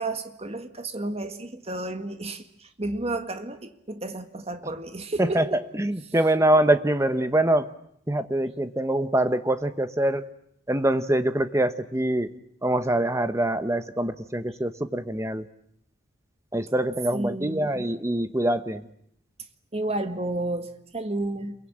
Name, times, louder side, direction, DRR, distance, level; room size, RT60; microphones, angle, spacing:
voice 1, 0.0-5.6 6.1-6.2 17.1-17.9 19.7-21.5, right 2 dB, 30° right, 1.7 m, -32 dB
voice 2, 5.8-7.7 8.1-10.3 10.7-12.3 12.6-15.5 16.5-18.9, right 1 dB, 15° right, 1.0 m, -24 dB
28.5 x 22.5 x 8.8 m
head